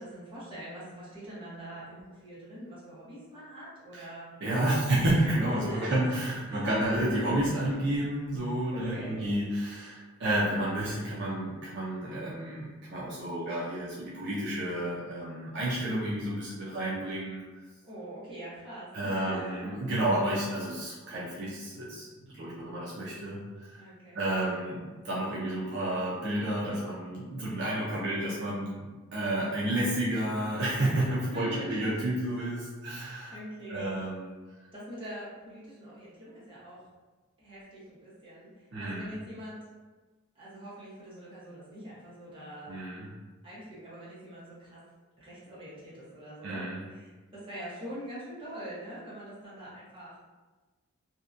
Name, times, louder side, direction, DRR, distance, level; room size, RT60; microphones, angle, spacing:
voice 1, 0.0-4.3 5.4-6.0 6.5-6.9 8.7-9.2 17.8-19.8 23.8-24.2 24.5-24.6 31.3-32.0 33.3-34.0 34.7-36.8 37.4-39.6 40.3-42.8 43.4-44.8 45.2-50.2, right 1 dB, 25° right, -9 dB, 0.8 m, -43 dB
voice 2, 4.4-17.4 18.9-23.9 24.1-33.4 33.7-34.3 38.7-39.1 42.7-43.1 46.4-46.8, right 1 dB, 55° right, -7 dB, 0.5 m, -31 dB
2.7 x 2.1 x 2.4 m, 1.3 s
head